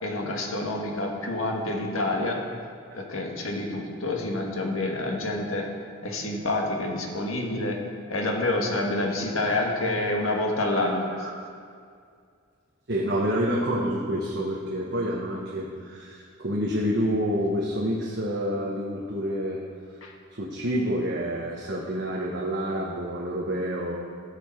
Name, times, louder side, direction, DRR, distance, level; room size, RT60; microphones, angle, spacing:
voice 1, 0.0-2.4 3.0-5.7 6.0-7.8 8.1-11.1 20.0-20.1, left 2 dB, 75° left, 1 dB, 1.7 m, -28 dB
voice 2, 12.9-19.6 20.3-24.0, equal, 55° right, -3 dB, 1.3 m, -28 dB
16.0 x 6.9 x 4.6 m, 2.2 s
head